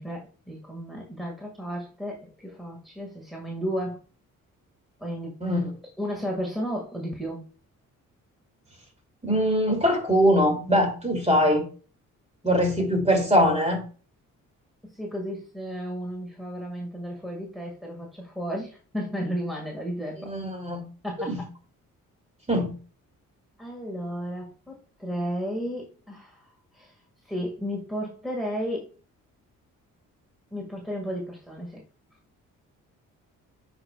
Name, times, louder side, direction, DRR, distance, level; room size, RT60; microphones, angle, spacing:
voice 1, 0.0-4.0 5.0-5.6 6.0-7.5 14.8-20.3 21.0-21.5 23.6-27.0 27.3-28.9 30.5-31.8, equal, ahead, 0 dB, 1.9 m, -33 dB
voice 2, 9.2-11.6 12.4-13.8 20.2-20.8 21.3-21.4 22.5-22.8, equal, 20° right, 3 dB, 2.7 m, -22 dB
8.7 x 5.3 x 2.4 m, 0.38 s
supercardioid pair, 60°, 34 cm